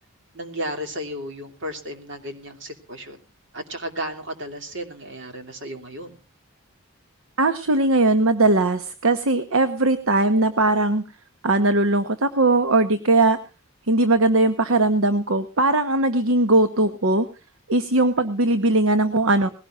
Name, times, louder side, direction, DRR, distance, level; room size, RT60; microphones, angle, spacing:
voice 1, 0.3-3.2 3.5-6.2, equal, 60° right, 5 dB, 2.8 m, -34 dB
voice 2, 7.4-11.0 11.4-13.4 13.9-17.3 17.7-19.5, right 2 dB, 75° right, 10 dB, 1.1 m, -19 dB
20.5 x 17.0 x 2.5 m, 0.32 s
head